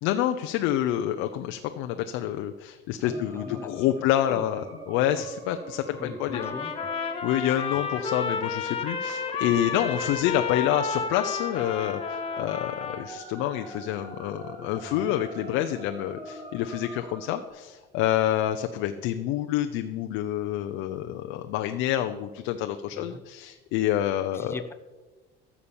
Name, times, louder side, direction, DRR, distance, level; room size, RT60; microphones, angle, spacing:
voice 1, 0.0-6.5 7.2-24.6, left 12 dB, 70° left, 7 dB, 0.8 m, -28 dB
voice 2, 3.0-3.7 4.0-4.4 5.0-5.2 6.0-6.9 14.9-15.2 23.0-23.2 24.3-24.7, left 3 dB, 10° left, 8 dB, 0.8 m, -40 dB
sound 1, 3.1-17.5, right 1 dB, 30° right, 4.3 m, -44 dB
Trumpet, 6.3-13.1, left 5 dB, 25° left, 1.3 m, -31 dB
14.0 x 7.3 x 7.1 m, 1.2 s
cardioid pair, 155°, 21 cm